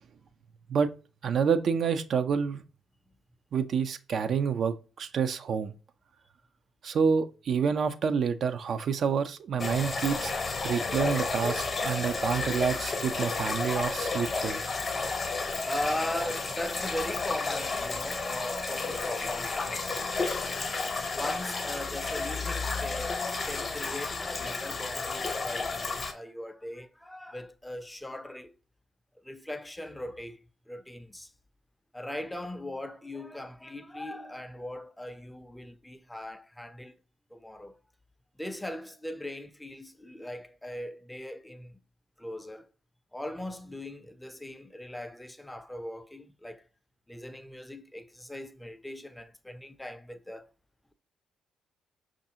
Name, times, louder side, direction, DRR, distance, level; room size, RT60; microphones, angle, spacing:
voice 1, 1.2-2.6 3.5-5.7 6.8-10.3 10.6-14.6, right 6 dB, 60° right, 0.3 m, -28 dB
sound 1, 9.6-26.1, left 3 dB, 40° left, 0.8 m, -32 dB
voice 2, 15.6-20.6 21.1-28.5 29.2-31.3 31.9-37.0 37.3-37.8 38.4-41.8 42.2-42.7 43.1-46.7 47.1-50.5, left 1 dB, 10° left, 0.5 m, -39 dB
5.2 x 2.5 x 2.7 m
hypercardioid pair, 45°, 0 cm